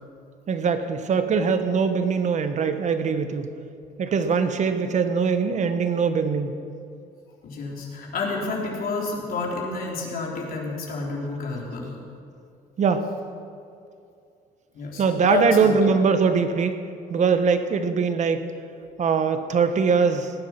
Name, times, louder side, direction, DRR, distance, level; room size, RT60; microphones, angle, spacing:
voice 1, 0.5-3.5 4.0-6.5 12.8-13.0 15.0-16.7 17.1-18.5 19.0-20.3, right 5 dB, 45° right, 9 dB, 1.3 m, -22 dB
voice 2, 7.4-12.0 14.7-15.9, left 4 dB, 60° left, -2 dB, 3.7 m, -29 dB
18.0 x 9.9 x 6.0 m, 2.5 s
cardioid pair, 110°, 17 cm